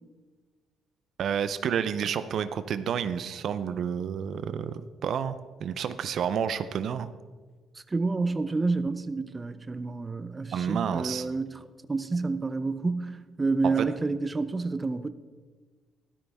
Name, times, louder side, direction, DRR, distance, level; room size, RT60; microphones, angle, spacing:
voice 1, 1.2-7.1 10.5-11.3 13.6-13.9, right 8 dB, 65° right, 0.6 m, -30 dB
voice 2, 7.7-15.1, right 3 dB, 25° right, 0.6 m, -29 dB
13.0 x 12.5 x 3.5 m
cardioid pair, 90°, 0 cm